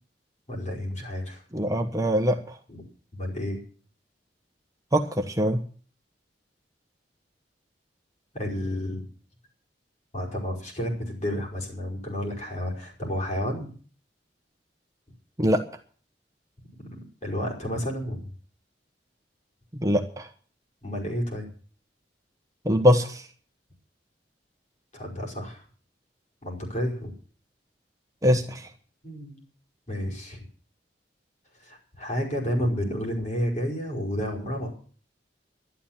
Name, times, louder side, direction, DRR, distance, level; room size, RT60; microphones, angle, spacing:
voice 1, 0.5-1.4 2.7-2.8 3.2-3.6 8.3-9.0 10.1-13.7 16.8-18.3 20.8-21.5 24.9-25.6 26.4-27.1 29.0-29.4 29.9-30.4 31.6-34.7, equal, 40° left, -1 dB, 5.2 m, -31 dB
voice 2, 1.5-2.4 4.9-5.6 15.4-15.6 19.8-20.3 22.6-23.2 28.2-28.7, equal, 20° right, 4 dB, 1.2 m, -22 dB
12.0 x 12.0 x 7.4 m, 0.42 s
head